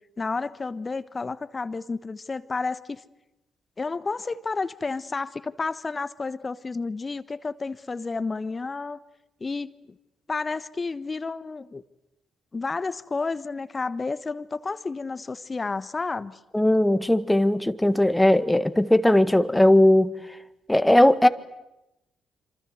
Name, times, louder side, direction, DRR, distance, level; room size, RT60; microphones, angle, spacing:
voice 1, 0.2-3.0 3.8-9.0 9.4-10.0 10.3-11.8 12.5-16.4, left 4 dB, 30° left, 1.2 m, -31 dB
voice 2, 16.5-20.1 20.7-21.3, left 1 dB, 10° left, 1.7 m, -18 dB
27.5 x 26.5 x 8.0 m
figure-of-eight pair, 40°, 0 cm